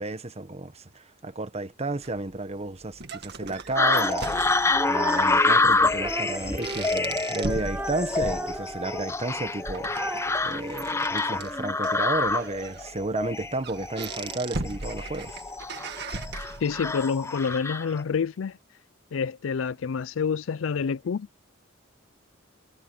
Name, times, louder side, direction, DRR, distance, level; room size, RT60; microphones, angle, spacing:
voice 1, 0.0-4.5 4.8-15.4, right 2 dB, 35° right, 1.2 m, -32 dB
sound 1, 2.0-17.0, right 3 dB, 60° right, 1.9 m, -39 dB
sound 2, 3.8-18.0, left 3 dB, 15° left, 0.7 m, -27 dB
Female singing, 4.7-11.8, right 1 dB, 10° right, 2.4 m, -36 dB
voice 2, 16.6-18.6 19.1-21.3, left 6 dB, 90° left, 0.4 m, -28 dB
head